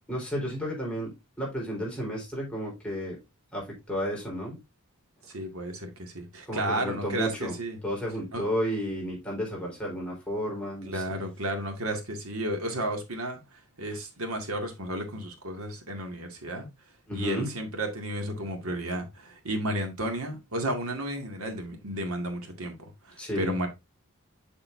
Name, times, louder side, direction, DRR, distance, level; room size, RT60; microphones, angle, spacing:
voice 1, 0.1-1.1 1.4-3.2 3.5-4.6 6.5-7.6 7.8-11.2 17.1-17.5 23.2-23.5, equal, 5° left, 4.0 m, -32 dB
voice 2, 5.3-7.8 8.3-8.4 10.9-16.7 17.1-23.7, right 1 dB, 85° right, 2.2 m, -33 dB
7.1 x 6.6 x 2.6 m
head